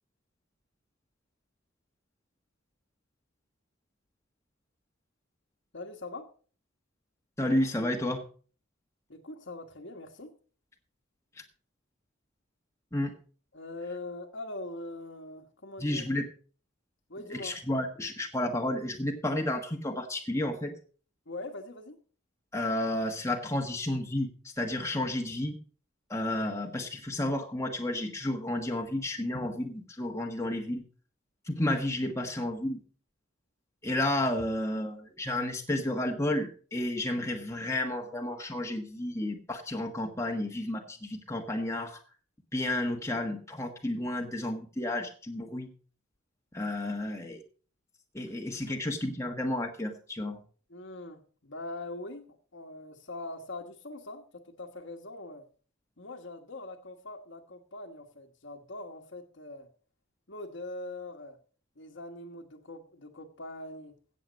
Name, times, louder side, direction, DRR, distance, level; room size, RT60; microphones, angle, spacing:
voice 1, 5.7-6.3 9.1-10.3 13.5-16.2 17.1-17.5 21.3-22.0 48.3-48.4 48.6-48.8 50.7-55.4 56.0-59.7 60.3-61.4 61.8-63.9, left 2 dB, 60° left, 4 dB, 1.5 m, -42 dB
voice 2, 7.4-8.2 12.9-13.1 15.8-16.2 17.3-20.8 22.5-25.6 26.1-30.8 31.4-32.8 33.8-42.0 42.5-45.7 46.5-47.4 48.1-50.4, left 1 dB, 15° left, 2 dB, 1.4 m, -31 dB
16.0 x 7.6 x 5.2 m, 0.41 s
head